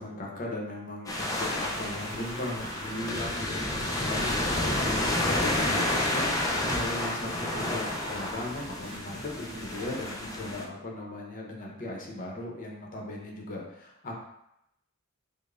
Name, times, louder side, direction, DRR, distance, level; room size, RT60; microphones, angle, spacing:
voice 1, 0.0-14.2, left 1 dB, 40° left, -2 dB, 0.7 m, -37 dB
sound 1, 1.1-10.7, left 1 dB, 15° left, 0.4 m, -30 dB
sound 2, 1.4-10.1, right 1 dB, 25° right, 0.8 m, -44 dB
5.0 x 2.1 x 2.4 m, 0.82 s
head